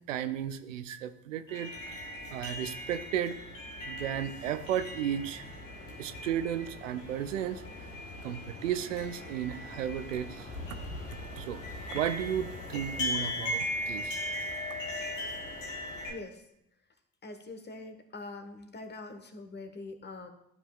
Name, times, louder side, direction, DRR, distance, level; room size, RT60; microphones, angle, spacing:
voice 1, 0.1-1.7 2.3-3.4 3.9-5.4 6.0-7.6 8.2-10.8 11.4-11.6 11.9-14.2, right 10 dB, 85° right, 10 dB, 0.5 m, -34 dB
sound 1, 1.5-16.1, left 1 dB, 85° left, 1.4 m, -38 dB
voice 2, 16.1-16.4 17.2-20.3, left 2 dB, 30° left, 7 dB, 1.2 m, -44 dB
12.5 x 5.5 x 2.4 m, 0.77 s
figure-of-eight pair, 50°, 37 cm